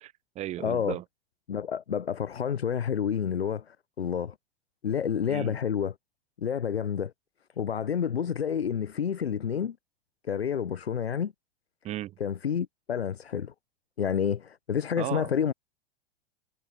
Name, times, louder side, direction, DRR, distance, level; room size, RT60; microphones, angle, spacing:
voice 1, 0.0-1.0 5.3-5.6 11.8-12.1 15.0-15.3, right 14 dB, 20° right, 0.6 m, -35 dB
voice 2, 0.6-1.0 1.5-4.3 4.8-5.9 6.4-7.1 7.6-9.8 10.3-11.3 12.2-13.5 14.0-15.5, left 8 dB, 75° left, 0.9 m, -29 dB
figure-of-eight pair, 90°, 31 cm